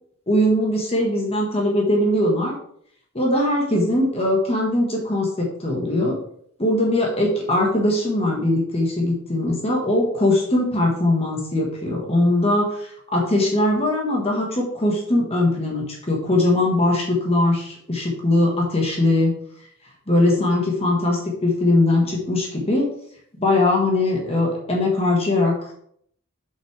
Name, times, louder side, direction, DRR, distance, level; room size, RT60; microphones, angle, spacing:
voice 1, 0.3-2.6 3.1-6.2 6.6-19.3 20.1-22.9 23.4-25.7, left 1 dB, 30° left, -1 dB, 1.4 m, -21 dB
7.3 x 5.7 x 3.3 m, 0.66 s
head